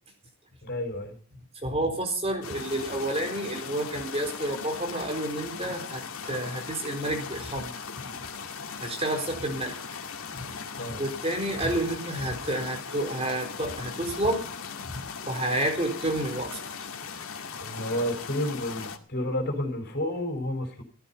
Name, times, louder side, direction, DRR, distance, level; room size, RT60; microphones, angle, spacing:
voice 1, 0.6-1.2 10.8-11.0 17.6-20.8, left 1 dB, 50° left, 5 dB, 4.8 m, -30 dB
voice 2, 1.6-7.7 8.8-9.7 10.3-10.4 11.0-14.4 14.8-16.5, right 1 dB, 30° right, 3 dB, 4.1 m, -30 dB
sound 1, 2.4-19.0, left 5 dB, 75° left, 2.1 m, -38 dB
16.5 x 13.5 x 5.6 m, 0.43 s
head